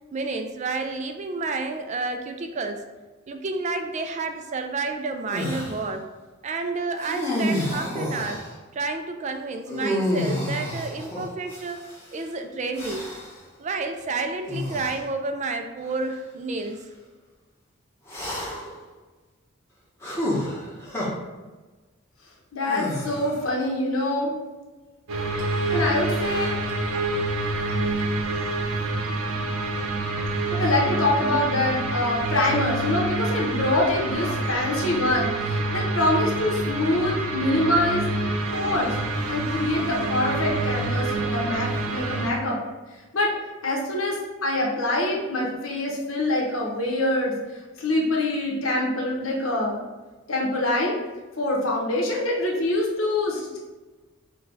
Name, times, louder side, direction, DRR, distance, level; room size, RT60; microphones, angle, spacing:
voice 1, 0.1-2.8 3.3-6.1 6.4-8.4 8.7-11.8 12.1-13.1 13.6-16.9, right 3 dB, 35° right, 6 dB, 0.3 m, -30 dB
sound 1, 5.3-5.8 7.0-8.5 9.7-12.0 12.7-13.4 14.5-15.0 15.8-16.0 18.1-18.8 20.0-21.1 22.6-23.5, left 1 dB, 10° left, 1.0 m, -29 dB
voice 2, 22.5-24.3 25.7-26.6 30.5-38.0 38.5-38.9 39.3-42.6 43.1-43.4 43.6-47.4 47.8-49.9 50.3-51.0 51.4-53.6, left 1 dB, 70° left, -2 dB, 1.1 m, -25 dB
sound 2, 25.1-42.3, right 2 dB, 90° right, 0.6 m, -27 dB
5.2 x 2.3 x 3.9 m, 1.2 s
head